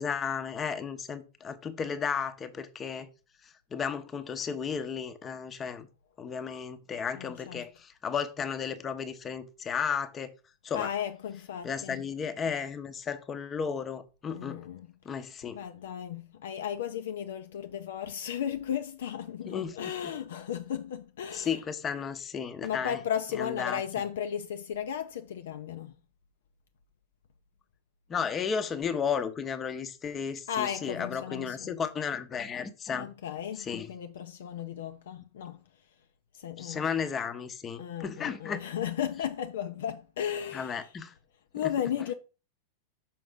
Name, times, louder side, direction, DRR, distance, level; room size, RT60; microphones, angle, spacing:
voice 1, 0.0-3.1 3.7-5.9 6.2-10.3 10.6-10.9 11.6-14.6 15.0-15.6 19.5-19.8 20.0-20.1 21.3-23.0 23.4-23.8 28.1-33.1 33.6-33.9 36.6-38.6 40.5-41.1 41.6-41.7, left 6 dB, 20° left, 0.7 m, -34 dB
voice 2, 7.1-7.7 10.7-12.0 14.3-14.9 15.5-21.6 22.6-25.9 30.5-31.7 32.9-35.6 36.4-36.8 37.8-40.8 41.5-42.1, left 9 dB, 60° left, 0.5 m, -35 dB
5.9 x 4.6 x 3.7 m
figure-of-eight pair, 90°, 0 cm